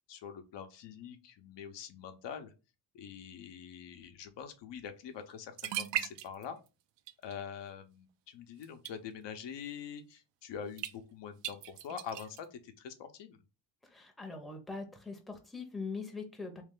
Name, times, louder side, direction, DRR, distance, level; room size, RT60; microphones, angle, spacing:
voice 1, 0.1-2.5 2.9-6.6 7.2-13.4, left 7 dB, 75° left, 0.8 m, -45 dB
sound 1, 5.3-5.4 5.6-6.7 7.0-7.4 8.6-8.9 10.8-10.9 11.4-12.4, right 12 dB, 80° right, 0.5 m, -37 dB
voice 2, 13.8-16.6, left 4 dB, ahead, 0.6 m, -42 dB
3.2 x 3.2 x 3.6 m
cardioid pair, 135°, 43 cm